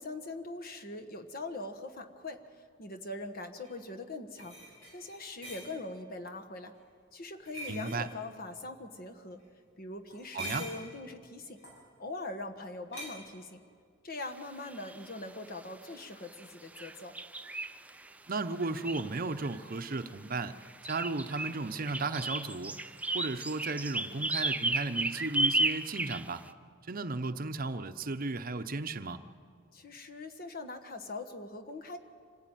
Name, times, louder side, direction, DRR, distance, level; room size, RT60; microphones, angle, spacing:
voice 1, 0.0-4.6 4.9-6.7 7.1-9.4 9.8-11.6 12.0-13.6 14.0-17.2 29.7-32.0, left 2 dB, 50° left, 6 dB, 1.4 m, -42 dB
sound 1, 3.6-3.7 4.4-5.7 7.5-8.0 10.1-10.9 11.6-11.8 12.9-13.1, equal, 75° left, 6.3 m, -43 dB
voice 2, 7.7-8.1 10.3-10.7 18.3-20.6 20.8-22.8 23.1-26.4 26.9-29.2, right 3 dB, 45° right, 10 dB, 0.8 m, -35 dB
sound 2, 14.7-15.2 16.4-16.5 16.8-18.1 18.6-19.9 20.6-26.5, right 2 dB, 5° right, 0.5 m, -34 dB
26.0 x 16.0 x 9.1 m, 2.1 s
head